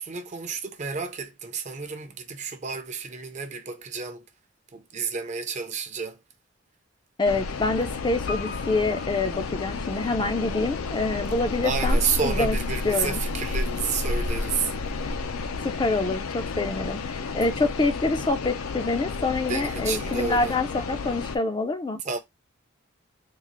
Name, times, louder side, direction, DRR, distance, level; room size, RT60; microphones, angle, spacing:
voice 1, 0.0-4.2 4.7-6.2 11.6-14.7 19.5-20.5 22.0-22.2, right 6 dB, 35° right, 0.5 m, -31 dB
voice 2, 7.2-12.6 12.8-13.2 15.6-22.0, left 3 dB, 20° left, 0.3 m, -26 dB
sound 1, 7.3-21.4, left 3 dB, 90° left, 0.5 m, -31 dB
Piano, 8.3-10.3 10.6-10.7, left 3 dB, 60° left, 0.8 m, -40 dB
3.8 x 2.4 x 3.0 m
head